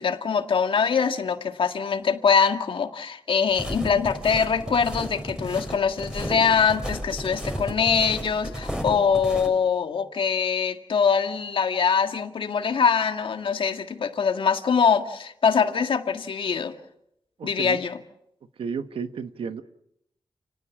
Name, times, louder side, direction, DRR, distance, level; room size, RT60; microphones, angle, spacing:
voice 1, 0.0-16.7 17.4-18.0, left 6 dB, 75° left, 6 dB, 1.9 m, -23 dB
sound 1, 3.5-9.5, equal, 10° right, 5.9 m, -33 dB
voice 2, 17.4-17.8 18.6-19.6, right 6 dB, 90° right, 10 dB, 1.4 m, -32 dB
30.0 x 19.0 x 7.4 m, 0.77 s
wide cardioid pair, 115°, 9 cm